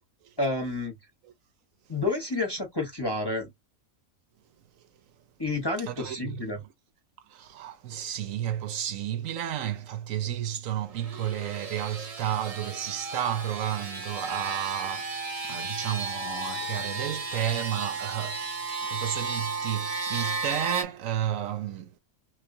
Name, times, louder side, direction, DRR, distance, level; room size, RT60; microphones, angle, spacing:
voice 1, 0.4-0.9 1.9-3.5 5.4-6.6, left 2 dB, 20° left, 0.8 m, -29 dB
voice 2, 5.9-6.5 7.3-21.9, right 10 dB, 70° right, 1.0 m, -32 dB
sound 1, 10.9-20.8, right 3 dB, 35° right, 0.7 m, -34 dB
3.7 x 3.2 x 2.6 m
omnidirectional pair, 1.5 m